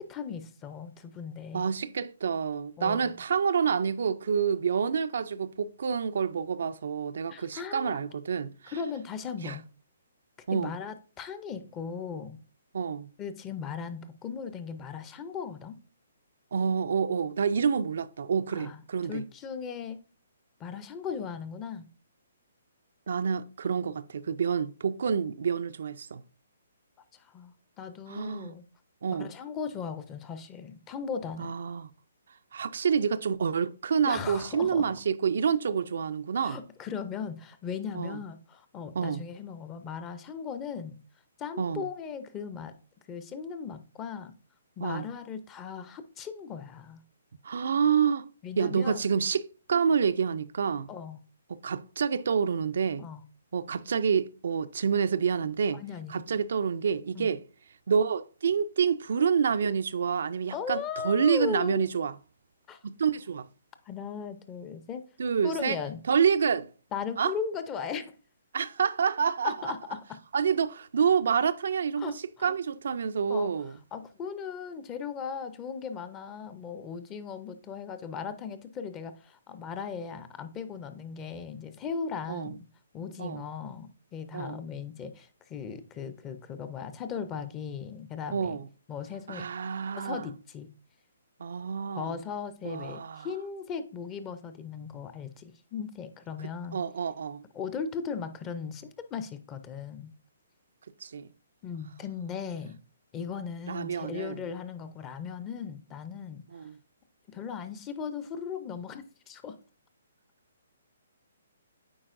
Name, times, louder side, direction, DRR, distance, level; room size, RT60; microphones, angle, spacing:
voice 1, 0.0-1.7 2.8-3.2 7.3-8.0 8.7-9.6 10.5-12.4 13.2-15.8 18.5-18.8 19.1-20.0 20.6-21.9 27.1-28.6 29.1-31.5 34.0-34.9 36.4-41.0 41.4-42.7 43.1-44.3 44.8-47.0 48.4-49.0 50.9-51.2 53.0-53.2 55.8-56.2 57.1-57.3 60.5-61.9 62.7-62.8 63.9-65.0 65.4-66.0 66.9-68.1 69.4-69.8 72.0-72.5 73.3-73.5 73.9-82.7 82.9-88.6 88.9-89.5 90.0-90.7 91.9-96.8 97.5-100.1 101.6-102.8 103.1-106.4 107.3-109.6, left 6 dB, 20° left, 0.6 m, -37 dB
voice 2, 1.5-8.7 9.4-9.6 10.5-10.7 12.7-13.1 16.5-19.2 23.1-26.2 28.1-28.5 29.0-29.3 31.4-31.9 32.5-36.6 37.9-38.2 38.9-39.2 41.6-41.9 44.8-45.1 47.4-48.3 48.6-50.9 51.5-53.0 53.5-55.8 56.1-57.4 57.9-62.1 62.8-63.5 65.2-65.8 66.1-66.7 67.2-67.3 68.5-69.7 70.3-72.1 72.4-73.7 82.3-82.5 83.2-83.5 84.3-84.6 88.3-88.6 89.3-90.3 91.4-92.1 92.6-93.3 96.7-97.4 101.0-101.3 103.7-104.4 106.5-106.8, right 6 dB, 70° right, 0.4 m, -28 dB
8.6 x 4.4 x 2.5 m
hypercardioid pair, 145°, 0 cm